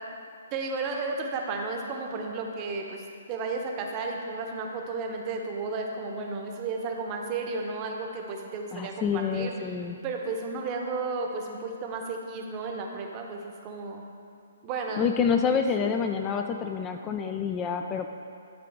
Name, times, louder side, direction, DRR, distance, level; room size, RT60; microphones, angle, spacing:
voice 1, 0.5-9.5 10.0-14.0 14.6-15.0, right 3 dB, 30° right, 2 dB, 0.8 m, -33 dB
voice 2, 8.7-9.9 15.0-18.1, left 6 dB, 20° left, 5 dB, 0.3 m, -27 dB
11.5 x 3.8 x 3.5 m, 2.4 s
figure-of-eight pair, 130°, 0 cm